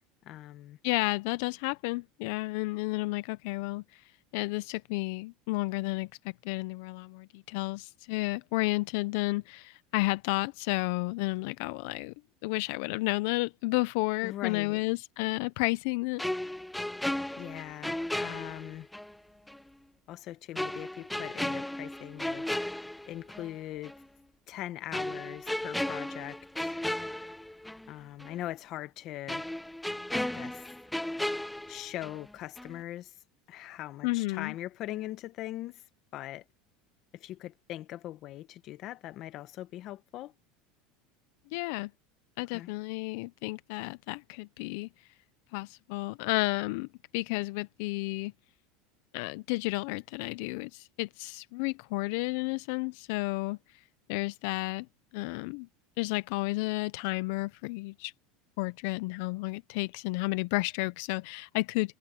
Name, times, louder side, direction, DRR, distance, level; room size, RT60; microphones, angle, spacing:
voice 1, 0.2-0.8 14.2-14.8 17.4-18.9 20.1-22.4 23.1-23.9 24.5-26.7 27.9-29.4 30.2-30.6 31.7-33.1 33.5-35.8 36.1-36.4 37.1-40.3 42.5-42.7, left 14 dB, 40° left, 1.4 m, -41 dB
voice 2, 0.8-12.1 12.4-16.2 34.0-34.5 41.5-41.9 42.4-45.1 45.5-46.9 47.1-48.3 49.1-53.8 54.1-54.9 55.1-55.7 56.0-58.1 58.6-62.0, left 23 dB, 65° left, 0.4 m, -32 dB
sound 1, 16.2-19.1 19.5-19.6 20.6-23.5 23.8-24.0 24.9-27.9 28.2-28.3 29.3-32.3 32.6-32.8, left 1 dB, 5° left, 0.7 m, -35 dB
supercardioid pair, 150°, 0 cm